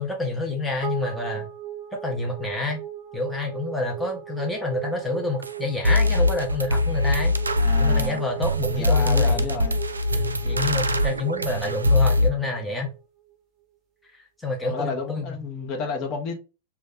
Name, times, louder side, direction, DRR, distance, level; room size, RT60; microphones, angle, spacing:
voice 1, 0.0-1.5 2.0-2.8 3.1-7.4 7.8-9.6 10.1-12.9 14.1-15.4, left 2 dB, 5° left, 0.8 m, -28 dB
sound 1, 0.8-13.3, right 11 dB, 30° right, 0.8 m, -37 dB
sound 2, 5.4-5.5 5.8-12.3, left 2 dB, 75° right, 0.3 m, -22 dB
voice 2, 7.6-8.2 8.8-9.8 14.6-16.3, left 4 dB, 40° left, 0.9 m, -31 dB
3.1 x 2.3 x 3.6 m
figure-of-eight pair, 90°, 0 cm